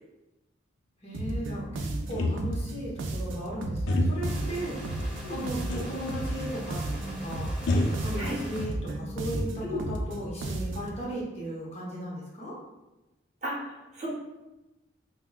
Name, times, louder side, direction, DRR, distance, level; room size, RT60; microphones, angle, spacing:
voice 1, 1.0-4.8 5.3-7.5 8.0-12.6, equal, 30° left, -6 dB, 0.9 m, -36 dB
sound 1, 1.1-11.0, right 2 dB, 80° right, 0.4 m, -34 dB
sound 2, 2.1-2.8 3.9-4.4 5.7-6.1 6.4-6.5 7.7-8.7 9.1-9.9, left 1 dB, 90° left, 0.5 m, -29 dB
sound 3, 4.3-8.7, right 1 dB, 5° right, 1.0 m, -43 dB
voice 2, 5.2-5.5 8.2-8.4 9.6-9.8 13.4-14.1, equal, 35° right, -4 dB, 0.8 m, -35 dB
5.5 x 2.1 x 2.3 m, 1.0 s
head